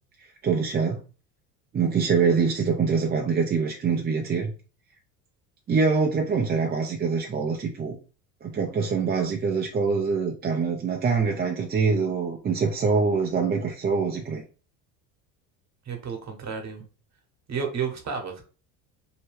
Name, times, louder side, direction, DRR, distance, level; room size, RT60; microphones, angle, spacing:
voice 1, 0.4-1.0 1.7-4.5 5.7-8.0 8.4-14.4, right 5 dB, 25° right, 0.5 m, -24 dB
voice 2, 15.8-16.8 17.5-18.4, right 6 dB, 40° right, 1.1 m, -31 dB
2.8 x 2.2 x 3.3 m
supercardioid pair, 85°, 40 cm